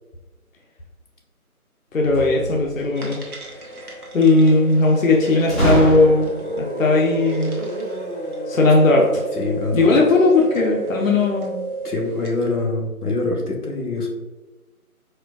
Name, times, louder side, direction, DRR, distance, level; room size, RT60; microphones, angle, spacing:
voice 1, 1.9-3.2 4.1-6.3 6.6-7.6 8.5-9.2 9.7-11.6, left 2 dB, 65° left, -1 dB, 0.6 m, -17 dB
sound 1, 2.0-3.0 5.5-6.5, equal, ahead, 0.6 m, -23 dB
sound 2, 2.9-12.5, right 2 dB, 75° right, 0.9 m, -33 dB
sound 3, 6.1-11.1, equal, 35° right, 0.7 m, -35 dB
voice 2, 9.3-9.8 11.8-14.1, left 3 dB, 90° left, 0 dB, 0.9 m, -24 dB
4.3 x 2.2 x 2.3 m, 1.1 s
figure-of-eight pair, 160°, 44 cm